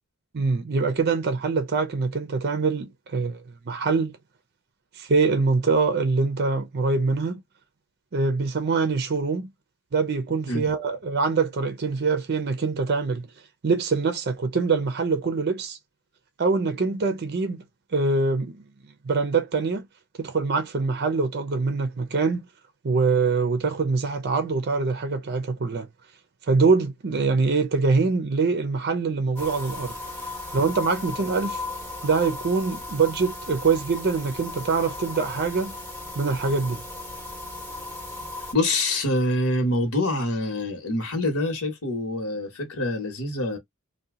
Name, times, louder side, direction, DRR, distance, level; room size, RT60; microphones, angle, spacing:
voice 1, 0.3-4.2 4.9-7.4 8.1-9.5 9.9-13.3 13.6-15.8 16.4-17.6 17.9-19.9 20.2-22.5 22.8-25.9 26.5-29.9 30.5-31.6 32.0-35.7 36.1-36.8, right 4 dB, 45° right, 0.5 m, -24 dB
sound 1, 29.4-38.5, left 2 dB, 10° left, 0.9 m, -36 dB
voice 2, 38.5-43.6, left 1 dB, 70° left, 1.2 m, -25 dB
2.8 x 2.3 x 3.6 m
head